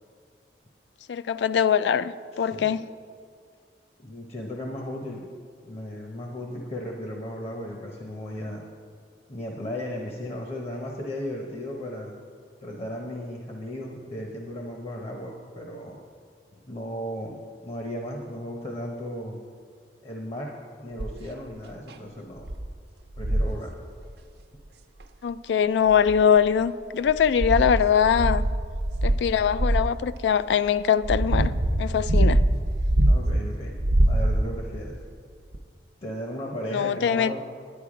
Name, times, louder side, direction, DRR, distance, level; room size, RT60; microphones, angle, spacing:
voice 1, 1.1-2.8 25.2-28.4 29.0-31.5 31.8-32.4 36.7-37.4, left 7 dB, 75° left, 16 dB, 0.3 m, -22 dB
voice 2, 2.3-2.7 4.0-5.3 5.6-8.6 9.3-12.2 12.6-16.0 16.6-19.4 20.0-20.5 20.8-22.5 23.2-23.8 33.1-35.0 36.0-37.4, equal, 35° left, 1 dB, 0.8 m, -35 dB
sound 1, 21.0-21.3 21.9-22.0 22.4-22.7 23.2-23.6 25.0-25.1 25.9-26.6 27.1-29.9 30.7-33.4 33.8-34.7 35.5-35.6, right 1 dB, 65° right, 0.6 m, -23 dB
10.0 x 10.0 x 4.9 m, 2.1 s
head